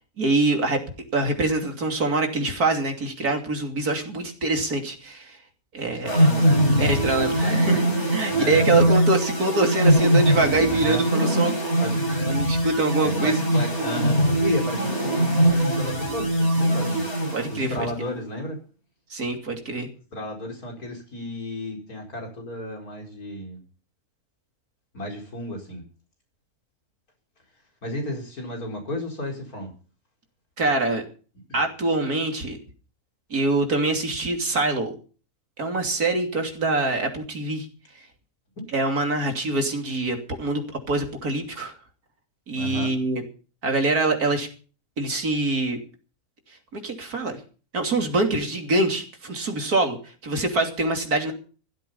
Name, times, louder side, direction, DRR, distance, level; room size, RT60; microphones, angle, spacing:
voice 1, 0.2-0.8 1.1-5.4 5.7-6.2 6.8-7.8 8.1-11.5 12.3-13.4 17.3-17.9 19.1-19.9 30.6-31.0 31.5-32.6 33.3-34.9 35.6-37.7 38.7-41.7 42.5-43.2 43.6-44.5 45.0-45.8 46.7-47.4 47.7-51.3, right 2 dB, 85° right, 4 dB, 3.4 m, -24 dB
voice 2, 6.0-6.9 7.2-7.8 8.3-9.0 10.7-11.0 11.8-12.3 13.0-17.1 17.5-18.6 20.1-23.6 24.9-25.8 27.8-29.7 31.5-31.6 38.6-38.7 42.6-42.9, left 1 dB, 75° left, 2 dB, 5.1 m, -33 dB
sound 1, 6.1-17.9, right 1 dB, 50° left, 4.8 m, -22 dB
15.5 x 13.0 x 5.6 m, 0.39 s
omnidirectional pair, 1.6 m